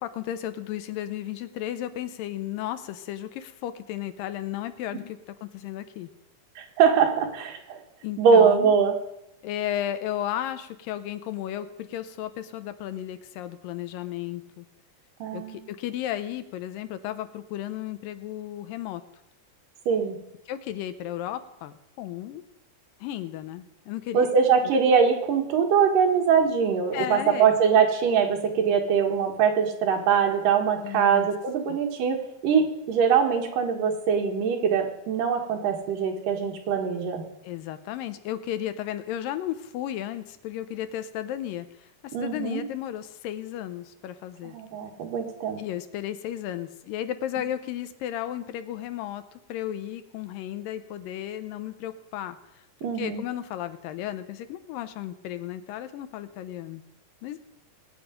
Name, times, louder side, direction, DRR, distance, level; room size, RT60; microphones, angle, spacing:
voice 1, 0.0-6.1 8.0-8.8 9.4-14.7 15.3-19.0 20.5-22.4 23.0-24.3 26.9-27.6 30.8-31.3 31.7-31.8 37.4-44.6 45.6-52.4 52.8-56.8 57.2-57.4, left 12 dB, 90° left, 11 dB, 2.6 m, -34 dB
voice 2, 6.6-7.8 8.2-8.9 15.2-15.6 19.9-20.2 24.1-37.2 42.1-42.6 44.4-45.6 52.8-53.2, right 6 dB, 75° right, 2 dB, 3.3 m, -22 dB
20.5 x 9.1 x 5.2 m, 0.84 s
omnidirectional pair, 3.9 m